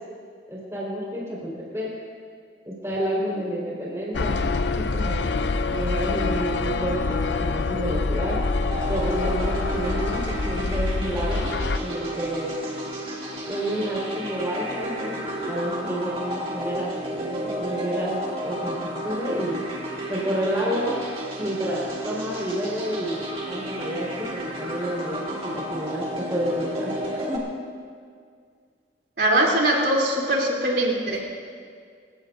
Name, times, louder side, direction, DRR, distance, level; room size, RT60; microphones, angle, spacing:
voice 1, 0.5-1.9 2.6-4.5 4.8-8.4 8.9-12.5 13.4-16.9 17.2-18.1 18.4-19.6 20.1-21.0 21.4-27.4, equal, 15° right, -6 dB, 4.9 m, -30 dB
sound 1, 4.1-11.8, left 3 dB, 75° left, 0.6 m, -26 dB
sound 2, 8.7-27.4, right 1 dB, 30° right, 2.4 m, -32 dB
voice 2, 29.2-31.2, right 1 dB, 65° right, -3 dB, 3.5 m, -21 dB
28.5 x 16.5 x 2.7 m, 2.1 s
head